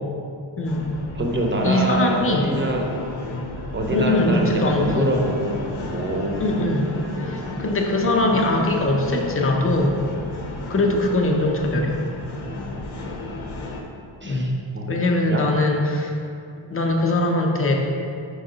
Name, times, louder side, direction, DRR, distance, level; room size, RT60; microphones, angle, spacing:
voice 1, 0.6-0.9 1.6-2.5 3.9-5.2 6.4-6.9 7.2-10.0 10.7-12.0 14.2-14.6 14.9-16.2 16.7-17.7, left 2 dB, 30° left, 1 dB, 0.6 m, -21 dB
sound 1, 0.7-13.8, left 2 dB, 90° left, 0.9 m, -33 dB
voice 2, 1.1-3.0 3.7-5.6 5.9-6.4 14.2-14.9 15.3-15.4, right 1 dB, 25° right, 1 dB, 0.6 m, -25 dB
5.2 x 4.7 x 3.9 m, 2.5 s
wide cardioid pair, 145°, 47 cm